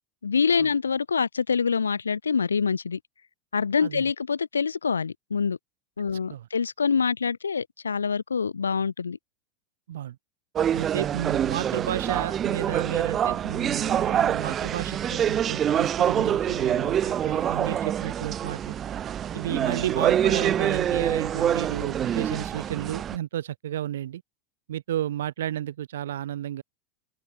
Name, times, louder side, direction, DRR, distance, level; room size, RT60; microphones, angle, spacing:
voice 1, 0.2-3.0 3.5-5.6 6.0-9.2, left 5 dB, 90° left, 2.3 m, -25 dB
sound 1, 10.6-23.2, right 9 dB, 35° right, 0.5 m, -26 dB
voice 2, 10.7-18.7 19.3-24.2 24.7-26.6, right 11 dB, 75° right, 1.7 m, -32 dB
hypercardioid pair, 90°, 0 cm